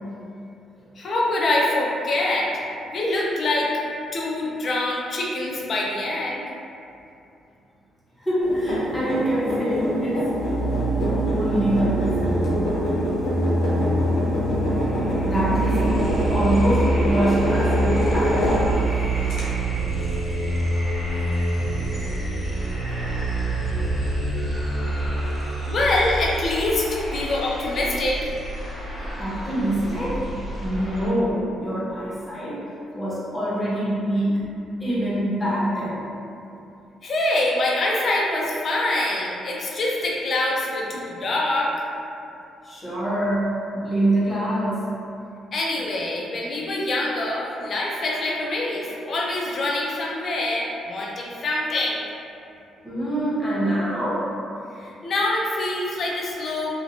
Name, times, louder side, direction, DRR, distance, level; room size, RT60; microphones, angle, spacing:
voice 1, 1.0-2.6 2.9-3.7 4.1-6.5 25.7-28.3 37.0-41.7 45.5-52.1 54.8-56.7, left 2 dB, 50° left, -3 dB, 0.4 m, -25 dB
voice 2, 8.2-10.3 11.0-12.4 15.2-18.8 24.6-25.7 29.2-30.2 30.6-32.6 32.9-34.5 34.8-36.0 42.6-44.8 52.8-54.3, right 1 dB, 10° left, -9 dB, 0.9 m, -25 dB
sound 1, 8.4-18.9 19.3-19.4, equal, 80° left, 0.7 m, -26 dB
sound 2, 10.3-27.7, right 2 dB, 70° right, 0.8 m, -26 dB
sound 3, 14.1-14.2 14.4-31.1, equal, 15° right, 1.2 m, -34 dB
2.6 x 2.1 x 2.7 m, 2.7 s
cardioid pair, 90°, 0 cm